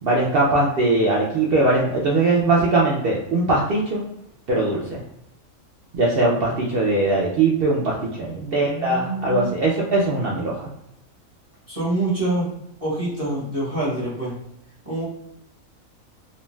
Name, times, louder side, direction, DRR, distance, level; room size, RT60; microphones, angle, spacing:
voice 1, 0.0-4.0 4.5-5.0 5.9-10.6, right 2 dB, 65° right, -3 dB, 0.6 m, -20 dB
voice 2, 8.4-9.6 11.7-12.5 12.8-14.4 14.8-15.0, right 2 dB, 30° right, -8 dB, 0.9 m, -26 dB
2.5 x 2.2 x 3.1 m, 0.83 s
omnidirectional pair, 1.4 m